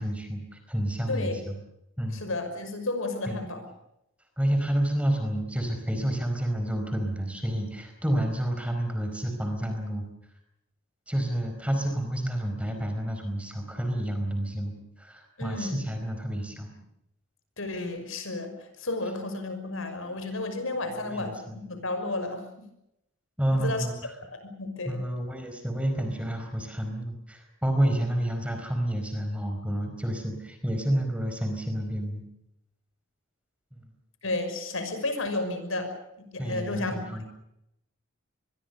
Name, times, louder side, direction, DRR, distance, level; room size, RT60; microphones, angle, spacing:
voice 1, 0.0-1.6 2.0-2.2 3.3-3.5 4.4-10.0 11.1-16.7 21.0-21.6 23.4-24.1 24.8-32.2 36.4-37.2, right 1 dB, 5° right, 5 dB, 4.6 m, -29 dB
voice 2, 1.1-1.4 2.1-3.7 15.4-15.9 17.6-22.5 23.5-23.9 24.3-25.0 34.2-35.9 36.2-37.0, left 2 dB, 75° left, 8 dB, 5.9 m, -32 dB
26.5 x 22.0 x 6.8 m, 0.81 s
head